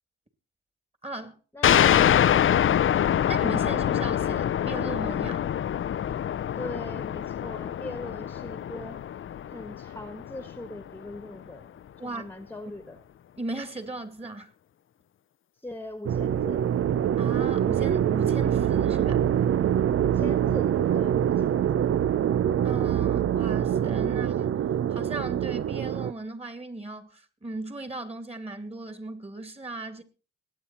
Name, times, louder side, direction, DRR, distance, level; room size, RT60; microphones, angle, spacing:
voice 1, 1.0-1.4 3.3-5.5 12.0-12.2 13.4-14.5 17.2-19.2 22.6-24.5 24.9-30.0, right 2 dB, 20° right, 2.6 m, -37 dB
sound 1, 1.6-10.8, left 10 dB, 45° left, 0.6 m, -25 dB
voice 2, 6.6-9.0 9.5-11.7 12.0-13.0 15.6-16.7 20.0-21.8, left 2 dB, 5° left, 1.6 m, -41 dB
sound 2, 16.0-26.1, right 10 dB, 45° right, 0.6 m, -24 dB
21.5 x 9.0 x 4.3 m
cardioid pair, 90°, 30 cm